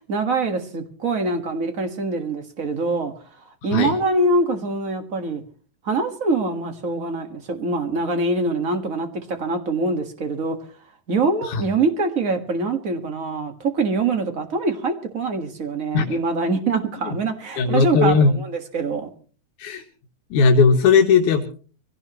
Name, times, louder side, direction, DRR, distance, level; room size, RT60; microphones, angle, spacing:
voice 1, 0.0-3.1 3.6-5.4 5.8-10.6 11.1-19.1, right 3 dB, 35° right, 1.4 m, -24 dB
voice 2, 17.6-18.3 19.6-19.8 20.3-21.4, left 5 dB, 85° left, 2.8 m, -17 dB
24.0 x 17.0 x 3.0 m
omnidirectional pair, 3.4 m